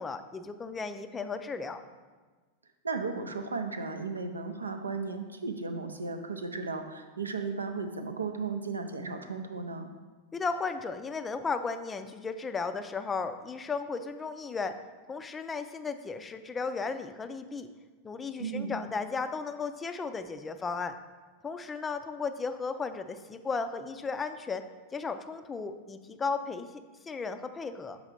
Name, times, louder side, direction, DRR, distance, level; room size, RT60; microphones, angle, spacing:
voice 1, 0.0-1.8 10.3-14.8 15.1-17.7 18.0-21.0 21.4-24.6 24.9-26.7 27.0-28.0, left 4 dB, 15° left, 9 dB, 0.4 m, -35 dB
voice 2, 2.8-9.9 18.4-18.8, right 4 dB, 75° right, 6 dB, 0.5 m, -35 dB
6.7 x 4.1 x 4.2 m, 1.4 s
figure-of-eight pair, 90°, 0 cm